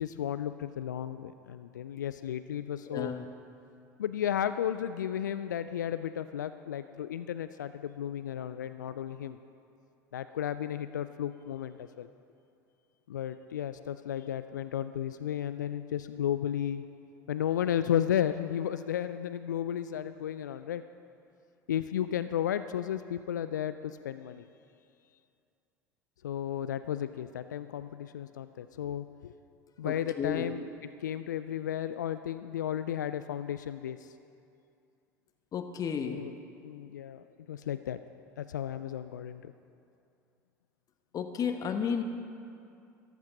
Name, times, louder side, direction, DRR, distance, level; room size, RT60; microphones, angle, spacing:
voice 1, 0.0-3.1 4.0-9.4 10.1-12.1 13.1-16.8 17.3-20.8 21.7-24.4 26.2-29.3 29.8-34.1 35.9-36.3 36.6-38.0 38.4-39.5, left 10 dB, 80° left, 12 dB, 0.4 m, -34 dB
voice 2, 2.9-3.3 29.8-30.5 35.5-36.3 41.1-42.0, left 7 dB, 40° left, 6 dB, 1.1 m, -32 dB
14.0 x 10.5 x 5.8 m, 2.5 s
figure-of-eight pair, 70°, 10 cm